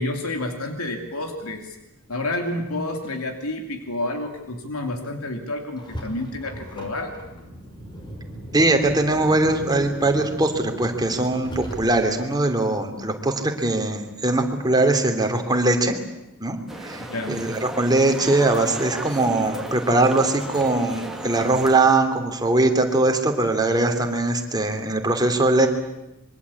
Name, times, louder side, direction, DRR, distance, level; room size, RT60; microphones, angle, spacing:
voice 1, 0.0-1.8 2.1-7.2 17.0-17.5, left 2 dB, 85° left, 5 dB, 2.8 m, -29 dB
Car, 5.8-12.3, equal, 20° left, 5.4 m, -38 dB
voice 2, 8.5-16.0 16.4-25.7, right 2 dB, 20° right, 5 dB, 3.1 m, -21 dB
sound 1, 16.7-21.8, right 1 dB, ahead, 2.6 m, -35 dB
25.5 x 23.5 x 8.5 m, 0.95 s
head